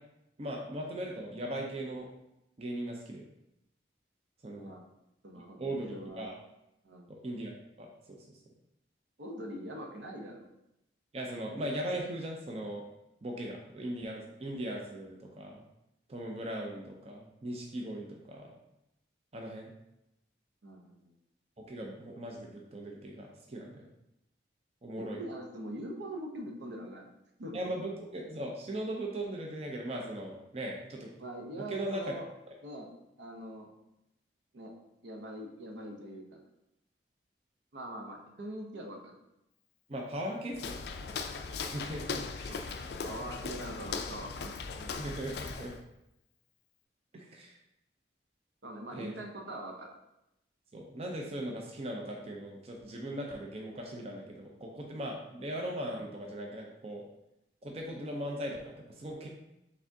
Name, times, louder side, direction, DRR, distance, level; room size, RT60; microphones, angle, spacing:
voice 1, 0.4-2.1 2.6-3.2 4.4-4.8 5.6-6.4 7.1-7.5 7.8-7.9 8.2-8.4 11.1-12.8 13.2-15.6 16.1-18.5 19.3-19.7 21.6-23.9 24.8-25.2 27.5-31.1 31.5-32.0 39.9-40.7 41.6-42.8 45.0-45.7 47.1-47.6 48.9-49.1 50.7-57.0 57.6-59.3, right 1 dB, 35° right, 0 dB, 0.5 m, -39 dB
voice 2, 5.2-6.3 6.8-7.1 9.2-10.4 20.6-21.1 25.0-27.1 27.4-27.7 31.2-32.3 32.6-32.9 33.2-33.7 34.5-34.7 35.0-36.4 37.7-39.2 43.0-44.9 48.6-49.9, right 1 dB, 75° right, 2 dB, 0.7 m, -43 dB
Walk footsteps, 40.5-45.8, left 5 dB, 60° left, 0.3 m, -38 dB
4.7 x 3.4 x 2.6 m, 0.87 s
head